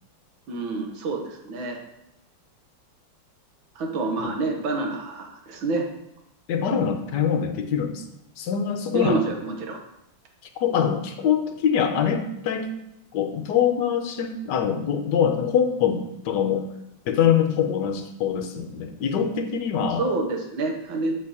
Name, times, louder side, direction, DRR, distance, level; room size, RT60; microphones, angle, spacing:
voice 1, 0.5-1.8 3.8-5.9 8.9-9.8 20.0-21.2, right 3 dB, 85° right, 2 dB, 1.8 m, -27 dB
voice 2, 6.5-8.0 8.4-9.2 10.6-12.7 13.1-16.6 17.1-20.0, left 8 dB, 70° left, 5 dB, 1.2 m, -24 dB
8.4 x 5.2 x 2.9 m, 0.82 s
omnidirectional pair, 2.2 m